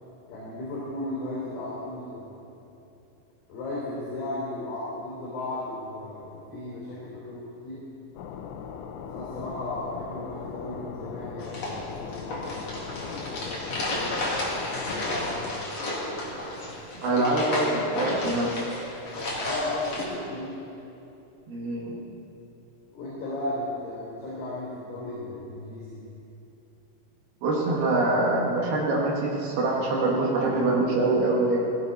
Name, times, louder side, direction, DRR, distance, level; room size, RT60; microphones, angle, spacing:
voice 1, 0.3-2.3 3.5-7.8 9.1-14.2 14.7-15.7 16.6-16.8 19.3-20.6 22.9-26.0, left 2 dB, 60° left, -7 dB, 5.7 m, -35 dB
sound 1, 8.2-15.5, left 6 dB, 80° left, 3.3 m, -39 dB
sound 2, 11.4-20.0, left 1 dB, 40° left, 2.6 m, -32 dB
voice 2, 17.0-18.5 21.5-21.9 27.4-31.6, right 2 dB, 60° right, -3 dB, 3.1 m, -24 dB
17.0 x 16.0 x 4.2 m, 2.9 s
omnidirectional pair, 5.9 m